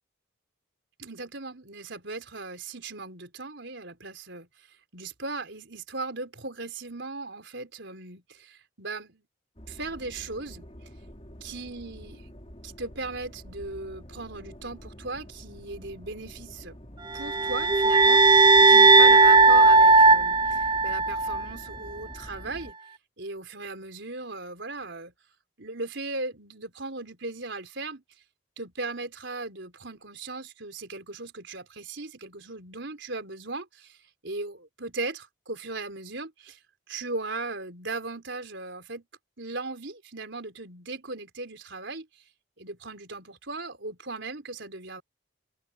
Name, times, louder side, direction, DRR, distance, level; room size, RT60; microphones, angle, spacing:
voice 1, 1.0-4.5 4.9-9.2 9.7-10.7 11.4-12.3 12.6-16.8 17.1-22.8 23.2-25.1 25.6-28.0 28.6-34.0 34.2-36.6 36.9-39.0 39.4-42.1 42.6-45.0, right 3 dB, 60° right, 4.9 m, -37 dB
sound 1, 9.6-22.7, equal, 30° left, 3.5 m, -46 dB
sound 2, 17.2-21.4, right 3 dB, 25° right, 1.0 m, -17 dB
open air
head